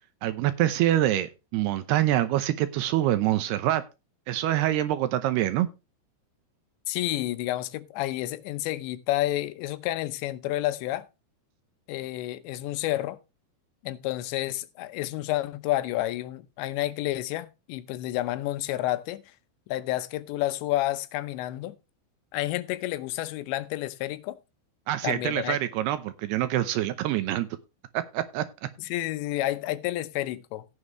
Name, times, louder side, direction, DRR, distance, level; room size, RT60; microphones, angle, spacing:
voice 1, 0.2-3.8 4.3-5.7 24.9-27.5 27.9-28.4, right 13 dB, 75° right, 2.6 m, -25 dB
voice 2, 6.9-11.1 11.9-13.2 13.8-19.2 19.7-21.8 22.3-24.4 25.0-25.6 28.8-30.7, left 15 dB, 80° left, 3.0 m, -30 dB
16.5 x 7.2 x 3.1 m
omnidirectional pair, 5.2 m